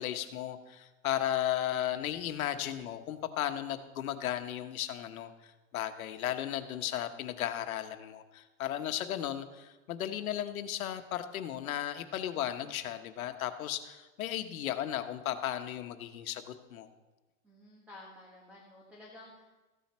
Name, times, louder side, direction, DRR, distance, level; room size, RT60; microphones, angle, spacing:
voice 1, 0.0-5.3 5.7-16.9, left 11 dB, 85° left, 8 dB, 1.2 m, -35 dB
voice 2, 17.4-19.5, left 2 dB, 5° right, -4 dB, 1.5 m, -52 dB
14.5 x 9.4 x 4.4 m, 1.2 s
supercardioid pair, 170°, 41 cm